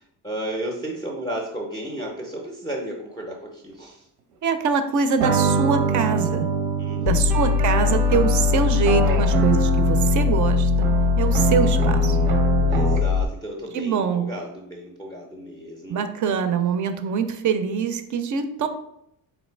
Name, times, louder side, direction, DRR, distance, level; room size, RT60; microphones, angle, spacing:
voice 1, 0.0-4.1 6.8-7.4 12.7-16.1 18.6-18.7, right 1 dB, 10° left, 0 dB, 0.5 m, -34 dB
voice 2, 4.4-6.5 7.0-10.9 11.2-12.2 13.7-14.3 15.9-18.7, right 6 dB, 45° right, 9 dB, 0.5 m, -24 dB
sound 1, 5.2-13.2, right 6 dB, 90° right, 0.8 m, -24 dB
sound 2, 7.1-13.2, left 7 dB, 70° left, 0.5 m, -21 dB
3.2 x 2.7 x 4.3 m, 0.78 s
cardioid pair, 115°, 42 cm